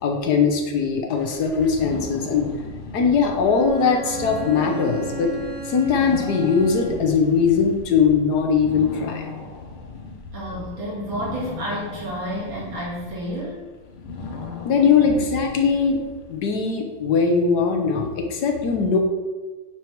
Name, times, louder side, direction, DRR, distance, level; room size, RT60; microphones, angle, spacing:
voice 1, 0.0-2.5 2.9-5.3 5.7-9.2 14.6-16.0 16.3-19.0, left 5 dB, 60° left, 3 dB, 1.1 m, -20 dB
sound 1, 1.1-16.5, left 4 dB, 85° left, 1.7 m, -37 dB
Bowed string instrument, 3.4-7.2, right 5 dB, 20° right, 1.2 m, -35 dB
voice 2, 10.3-13.6, equal, 65° right, -7 dB, 2.6 m, -30 dB
9.2 x 3.4 x 4.5 m, 1.3 s
omnidirectional pair, 2.3 m